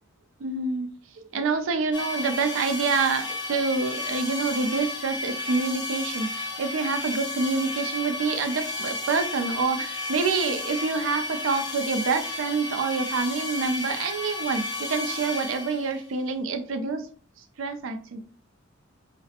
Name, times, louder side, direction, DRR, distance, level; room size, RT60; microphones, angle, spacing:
voice 1, 0.4-17.1 17.6-18.2, right 4 dB, 75° right, 7 dB, 0.4 m, -27 dB
sound 1, 1.9-16.0, left 2 dB, 20° left, 0.4 m, -33 dB
2.5 x 2.0 x 2.7 m, 0.42 s
head